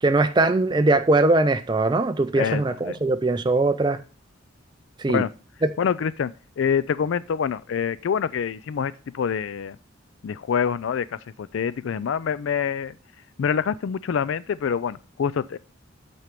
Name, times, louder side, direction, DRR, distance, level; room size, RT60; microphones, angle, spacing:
voice 1, 0.0-4.0 5.0-5.3 5.6-5.7, right 2 dB, 20° right, 0.4 m, -21 dB
voice 2, 2.3-3.0 5.1-5.3 5.8-6.3 6.6-9.8 10.2-13.0 13.4-15.6, left 7 dB, 70° left, 0.3 m, -26 dB
8.1 x 4.4 x 5.1 m
head